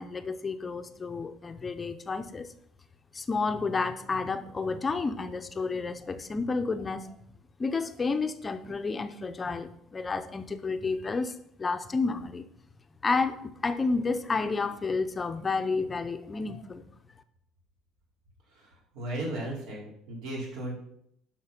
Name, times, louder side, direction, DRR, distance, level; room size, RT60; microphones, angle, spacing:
voice 1, 0.0-2.5 3.1-7.1 7.6-11.3 11.6-12.4 13.0-16.8, left 4 dB, 20° left, 8 dB, 0.6 m, -30 dB
voice 2, 18.5-20.7, right 1 dB, 80° right, -2 dB, 4.2 m, -36 dB
11.5 x 5.8 x 5.9 m, 0.73 s
cardioid pair, 140°, 0 cm